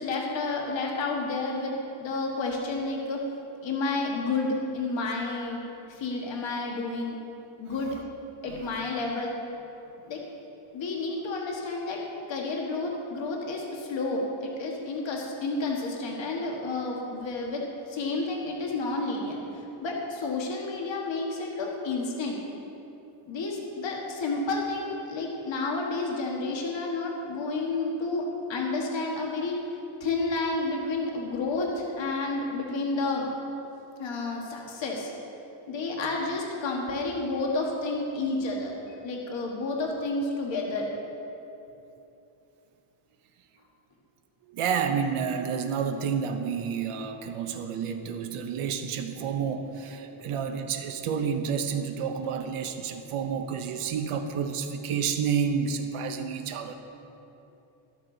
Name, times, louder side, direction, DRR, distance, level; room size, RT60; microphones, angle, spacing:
voice 1, 0.0-1.7 2.0-3.2 3.6-5.6 5.9-7.2 7.6-8.0 8.4-9.3 10.0-10.2 10.7-12.0 12.3-22.4 23.3-29.6 30.0-33.3 34.0-35.1 35.7-40.9 50.2-50.3, left 3 dB, 60° left, -1 dB, 1.8 m, -30 dB
voice 2, 44.5-56.7, right 6 dB, 90° right, 5 dB, 0.9 m, -30 dB
13.0 x 13.0 x 4.0 m, 2.9 s
wide cardioid pair, 180°, 50 cm